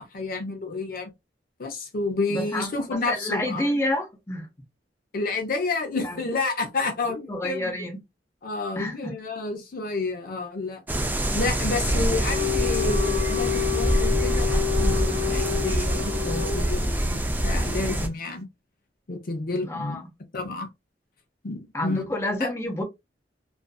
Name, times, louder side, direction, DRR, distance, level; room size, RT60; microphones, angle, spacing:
voice 1, 0.1-1.1 1.6-3.7 5.1-7.7 8.4-10.8 11.3-18.5 19.1-20.0 20.3-20.7 21.4-22.1 22.4-22.5, left 3 dB, 55° left, 0.6 m, -30 dB
voice 2, 2.3-4.5 6.0-6.2 7.3-8.0 8.8-9.1 19.6-20.1 21.7-22.8, left 1 dB, 15° left, 0.7 m, -29 dB
sound 1, 10.9-18.1, right 1 dB, 10° right, 0.4 m, -25 dB
Dog, 11.7-16.9, left 12 dB, 65° right, 0.9 m, -29 dB
2.5 x 2.4 x 2.3 m
head